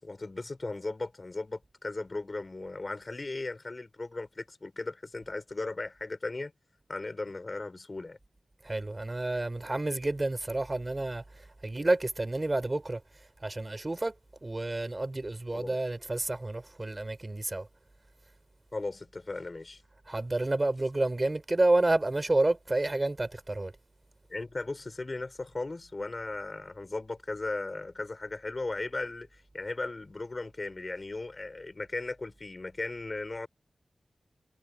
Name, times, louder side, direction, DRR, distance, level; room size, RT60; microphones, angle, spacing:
voice 1, 0.0-6.5 6.9-8.2 15.5-15.8 18.7-19.8 24.3-33.5, left 2 dB, 40° left, 5.1 m, -37 dB
voice 2, 8.6-11.2 11.6-13.0 13.4-14.1 14.4-17.7 20.1-23.7, right 2 dB, 30° right, 3.9 m, -29 dB
wide cardioid pair, 65°, 0 cm